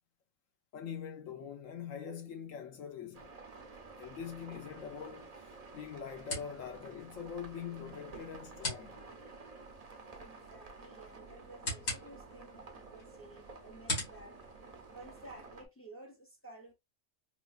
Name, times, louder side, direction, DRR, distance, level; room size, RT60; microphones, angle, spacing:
voice 1, 0.7-3.3 4.0-5.3 5.7-9.0, left 7 dB, 70° left, 1.1 m, -43 dB
sound 1, 3.1-15.7, right 3 dB, 45° right, 0.5 m, -52 dB
sound 2, 4.5-15.5, left 2 dB, 90° left, 2.2 m, -45 dB
voice 2, 10.2-14.4 14.9-16.7, right 1 dB, 15° left, 0.4 m, -54 dB
4.0 x 2.3 x 2.4 m
omnidirectional pair, 1.4 m